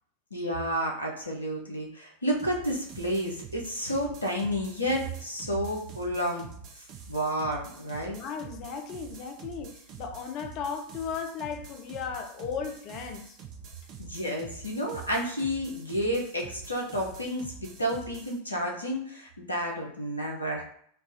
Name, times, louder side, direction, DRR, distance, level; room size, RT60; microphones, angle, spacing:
voice 1, 0.3-6.5 7.1-8.2 14.0-20.6, equal, 85° left, 0.8 m, -31 dB
sound 1, 2.4-18.4, right 6 dB, 40° right, 0.6 m, -47 dB
voice 2, 8.1-13.4, left 6 dB, 40° left, 0.5 m, -36 dB
4.6 x 2.3 x 2.6 m
figure-of-eight pair, 90°, 0 cm